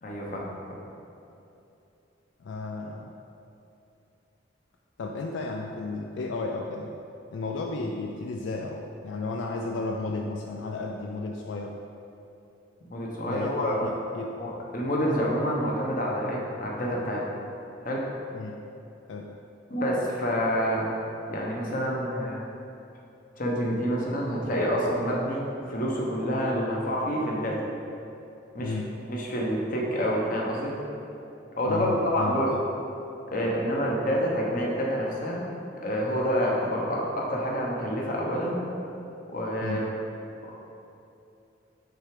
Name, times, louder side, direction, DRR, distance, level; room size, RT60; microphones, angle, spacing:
voice 1, 0.0-0.4 12.9-13.8 14.4-17.2 17.8-18.0 19.7-20.9 21.3-22.4 23.4-27.6 28.5-28.8 29.1-30.7 31.6-31.9 32.1-32.5 33.3-35.4 35.8-38.5 39.3-39.9, equal, 50° left, -3 dB, 1.0 m, -28 dB
voice 2, 2.4-3.1 5.0-7.0 7.3-11.8 13.2-14.4 18.3-18.6 19.1-19.3 28.6-28.9 31.6-32.6 39.6-39.9, left 3 dB, 80° left, 1 dB, 0.4 m, -33 dB
6.3 x 3.3 x 5.0 m, 2.8 s
head